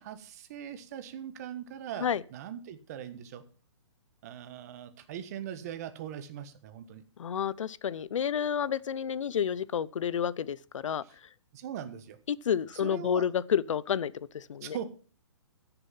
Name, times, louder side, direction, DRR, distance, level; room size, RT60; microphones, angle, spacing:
voice 1, 0.0-3.4 4.2-7.0 11.0-11.1 11.5-12.2 12.7-13.2 14.6-14.8, right 10 dB, 30° right, 1.2 m, -41 dB
voice 2, 7.2-11.0 12.3-14.8, left 8 dB, 80° left, 0.7 m, -30 dB
14.5 x 6.9 x 5.6 m
hypercardioid pair, 170°, 16 cm